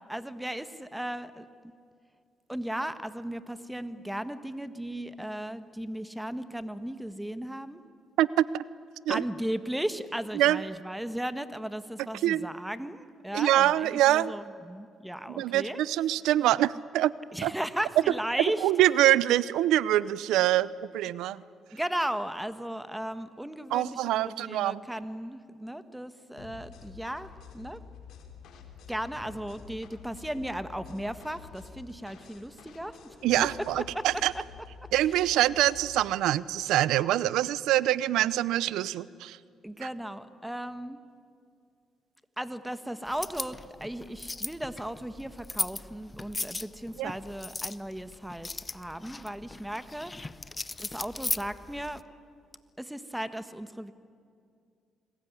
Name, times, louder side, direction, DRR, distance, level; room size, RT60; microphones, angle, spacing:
voice 1, 0.1-1.4 2.5-7.8 9.1-15.8 17.3-18.7 21.7-27.3 27.5-27.8 28.9-33.2 33.9-34.1 34.3-34.4 39.6-41.0 42.4-50.1 50.8-52.0 52.8-53.9, right 1 dB, 5° right, 12 dB, 1.5 m, -36 dB
voice 2, 8.2-8.6 9.1-9.2 10.4-10.6 12.2-12.5 13.3-14.3 15.4-17.1 17.4-17.5 18.6-21.4 23.7-24.8 33.2-34.3 34.9-39.4 47.0-47.1, right 13 dB, 90° right, 19 dB, 0.7 m, -25 dB
sound 1, 26.4-36.1, left 6 dB, 80° left, 3.7 m, -49 dB
sound 2, 43.1-52.0, left 3 dB, 20° left, 0.8 m, -38 dB
29.0 x 21.0 x 9.7 m, 2.3 s
cardioid pair, 90°, 0 cm